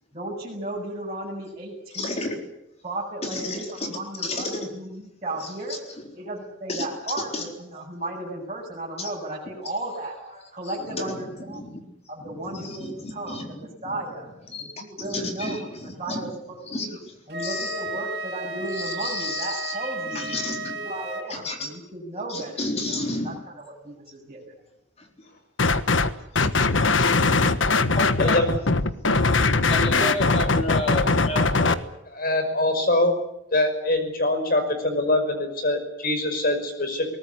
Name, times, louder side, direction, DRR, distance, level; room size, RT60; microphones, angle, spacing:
voice 1, 0.1-2.3 2.8-5.8 6.1-11.6 12.1-14.3 14.6-17.0 17.3-20.4 20.7-24.5, right 1 dB, 30° right, -5 dB, 7.0 m, -35 dB
voice 2, 1.9-2.4 3.2-4.7 5.4-6.0 6.7-7.5 9.0-9.1 10.6-11.8 12.2-14.0 14.5-16.3 16.7-17.8 18.7-20.8 21.3-21.7 22.3-23.3 25.0-25.3 26.3-26.4 27.9-28.4 29.6-31.8, left 2 dB, 35° left, 3 dB, 4.0 m, -32 dB
Wind instrument woodwind instrument, 17.3-21.3, right 2 dB, 55° right, 4.6 m, -33 dB
sound 1, 25.6-26.1 26.3-31.7, left 3 dB, 75° left, 1.3 m, -21 dB
voice 3, 32.2-33.1 33.5-37.1, left 1 dB, 50° left, 7 dB, 5.6 m, -23 dB
22.0 x 19.0 x 9.8 m, 0.82 s
head